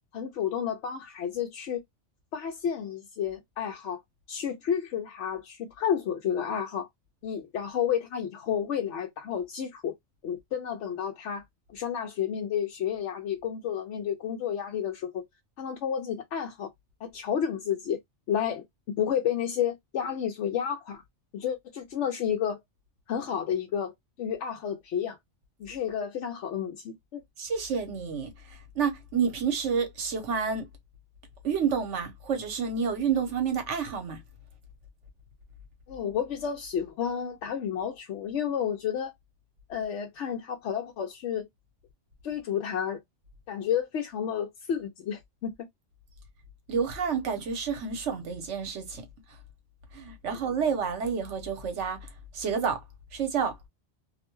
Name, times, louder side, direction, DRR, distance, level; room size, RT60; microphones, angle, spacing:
voice 1, 0.1-1.8 2.3-4.0 4.3-6.9 7.2-9.9 10.2-11.4 11.7-15.2 15.6-16.7 17.0-18.0 18.3-18.6 19.0-21.0 21.3-22.6 23.1-23.9 24.2-25.2 25.6-27.2 35.9-39.1 39.7-41.5 42.2-43.0 43.5-45.5 50.2-50.4, left 8 dB, 75° left, 0.9 m, -31 dB
voice 2, 27.4-30.7 31.4-34.2 46.7-49.0 49.9-52.0 52.3-52.8 53.1-53.6, right 6 dB, 75° right, 1.1 m, -29 dB
2.6 x 2.1 x 2.9 m
omnidirectional pair, 1.3 m